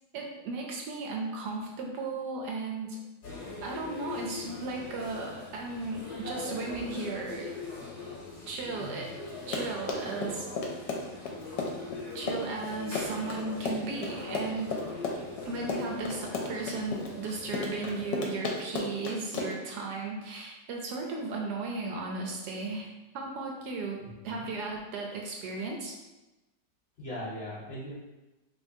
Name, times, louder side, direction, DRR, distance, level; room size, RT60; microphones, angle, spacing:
voice 1, 0.1-3.0 3.6-7.5 8.5-9.1 9.5-10.5 12.1-14.8 15.4-25.9, right 3 dB, 75° right, 0 dB, 1.1 m, -35 dB
sound 1, 3.2-18.1, left 3 dB, 55° left, 1.3 m, -42 dB
Run, 9.3-19.7, left 3 dB, 75° left, 1.3 m, -34 dB
voice 2, 24.0-24.4 27.0-27.9, equal, 40° left, -8 dB, 1.1 m, -39 dB
5.1 x 3.0 x 2.7 m, 1.1 s
omnidirectional pair, 1.9 m